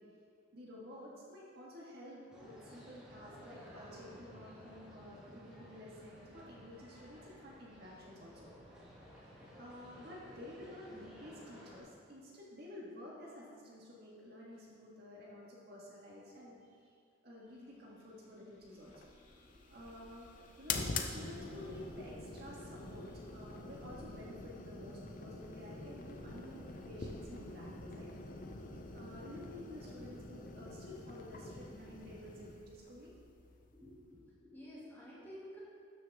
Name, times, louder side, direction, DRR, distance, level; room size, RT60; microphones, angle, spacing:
voice 1, 0.5-8.5 9.2-16.9 17.2-18.9 19.7-20.3 20.6-23.1 23.3-28.1 28.7-33.1, left 1 dB, 55° right, -5 dB, 1.7 m, -51 dB
sound 1, 2.3-11.8, equal, 5° right, 2.0 m, -55 dB
sound 2, 17.5-27.2, equal, 85° left, 1.6 m, -61 dB
sound 3, 18.8-34.1, left 3 dB, 40° left, 0.6 m, -46 dB
voice 2, 19.3-20.0 33.4-35.6, equal, 10° left, -9 dB, 2.4 m, -53 dB
12.5 x 6.4 x 3.6 m, 2.3 s
head